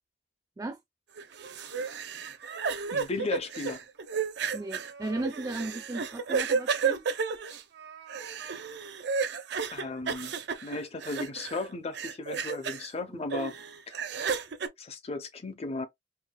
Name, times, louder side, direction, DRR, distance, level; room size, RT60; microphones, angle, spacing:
sound 1, 1.2-11.7 11.9-12.9 13.3-14.7, right 5 dB, 65° right, 0.6 m, -32 dB
voice 1, 2.9-3.8 9.7-10.3 10.6-13.5 13.9-14.1 14.8-15.9, left 3 dB, 35° left, 0.6 m, -35 dB
voice 2, 4.5-7.0 13.0-13.2, right 2 dB, 20° right, 0.4 m, -36 dB
4.7 x 2.2 x 2.2 m
head